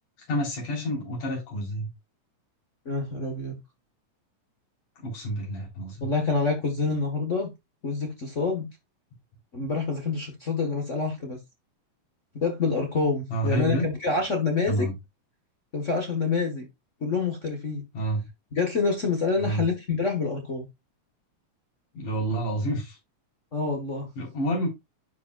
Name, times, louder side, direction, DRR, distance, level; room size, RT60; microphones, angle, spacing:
voice 1, 0.3-1.9 5.0-6.1 13.3-13.9 14.7-14.9 17.9-18.2 19.4-19.6 22.0-23.0 24.2-24.7, right 1 dB, 90° left, 5.3 m, -28 dB
voice 2, 2.8-3.6 6.0-7.5 7.8-8.7 9.5-11.4 12.3-14.9 15.7-16.6 17.0-17.8 18.5-20.7 23.5-24.1, left 4 dB, 50° left, 0.8 m, -27 dB
11.5 x 5.1 x 2.3 m
omnidirectional pair, 3.4 m